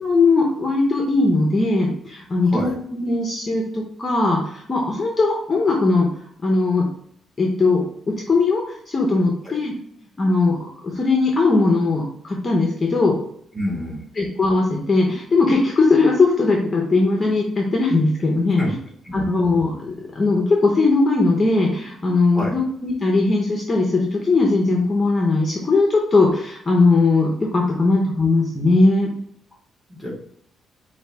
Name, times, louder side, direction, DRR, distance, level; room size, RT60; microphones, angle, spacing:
voice 1, 0.0-2.7 3.0-6.1 6.4-6.9 7.4-9.7 10.2-13.1 14.2-18.6 19.1-29.1, left 3 dB, 25° left, 0 dB, 0.7 m, -19 dB
voice 2, 2.4-2.7 9.4-9.5 13.5-14.1 18.6-18.7 19.0-19.1 22.3-22.6 30.0-30.3, equal, 5° right, -3 dB, 1.3 m, -28 dB
4.7 x 2.6 x 3.2 m, 0.66 s
cardioid pair, 155°, 0 cm